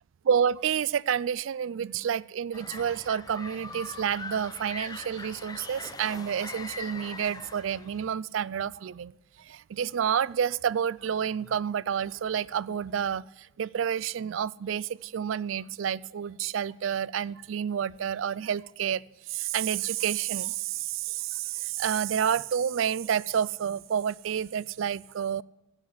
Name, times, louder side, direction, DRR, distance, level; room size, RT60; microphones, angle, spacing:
voice 1, 0.2-9.1 9.5-13.2 13.6-19.0 19.3-25.4, right 8 dB, 80° right, 0.4 m, -29 dB
sound 1, 2.5-8.0, left 3 dB, 20° left, 0.6 m, -42 dB
16.5 x 6.6 x 9.5 m
head